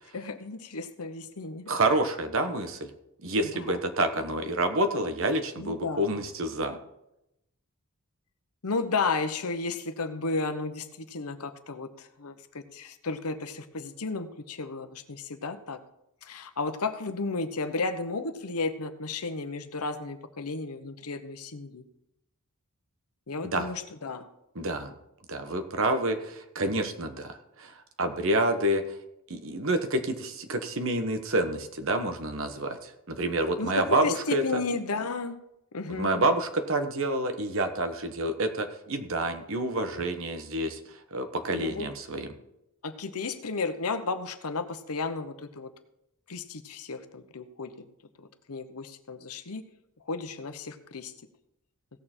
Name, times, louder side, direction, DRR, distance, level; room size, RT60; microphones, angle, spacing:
voice 1, 0.1-1.7 3.4-3.6 5.6-6.0 8.6-15.8 16.2-21.8 23.3-24.3 33.6-35.4 35.7-36.2 41.5-41.9 42.8-45.7 46.3-47.9 48.2-49.7 50.1-51.1, left 3 dB, 80° left, 9 dB, 1.0 m, -33 dB
voice 2, 1.7-2.9 3.2-6.8 23.5-23.7 24.5-24.9 25.3-29.0 29.3-34.6 35.9-40.8 41.1-42.3, right 1 dB, 60° right, 8 dB, 1.2 m, -28 dB
17.0 x 6.8 x 4.4 m, 0.85 s
head